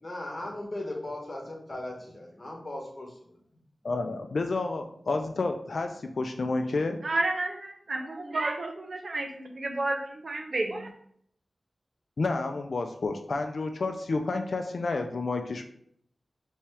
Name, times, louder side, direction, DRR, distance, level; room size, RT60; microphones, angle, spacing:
voice 1, 0.0-3.4, left 1 dB, 40° left, -1 dB, 1.5 m, -38 dB
voice 2, 3.8-7.0 12.2-15.7, left 3 dB, 75° left, 6 dB, 0.4 m, -30 dB
voice 3, 7.0-10.9, right 2 dB, 65° right, 4 dB, 0.7 m, -31 dB
4.3 x 3.5 x 3.3 m, 0.66 s
wide cardioid pair, 60°, 0 cm